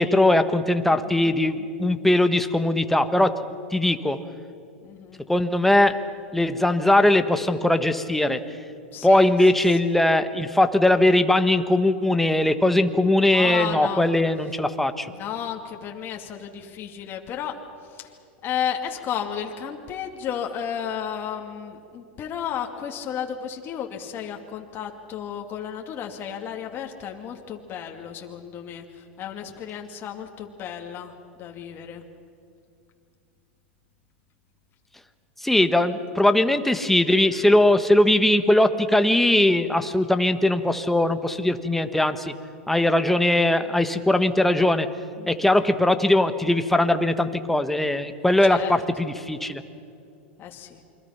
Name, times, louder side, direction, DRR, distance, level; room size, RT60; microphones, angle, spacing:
voice 1, 0.0-3.3 3.7-4.2 5.3-6.0 6.3-8.4 9.0-15.1 35.4-42.3 42.7-44.9 45.3-49.6, left 1 dB, 5° left, 8 dB, 1.4 m, -20 dB
voice 2, 0.9-1.3 4.8-5.2 8.9-9.3 9.8-10.0 13.2-14.1 15.1-17.6 17.9-18.1 18.4-32.0 45.2-45.5 48.5-48.8 50.4-50.8, left 8 dB, 35° left, 2 dB, 2.4 m, -33 dB
28.5 x 23.5 x 5.9 m, 2.5 s
hypercardioid pair, 110°, 6 cm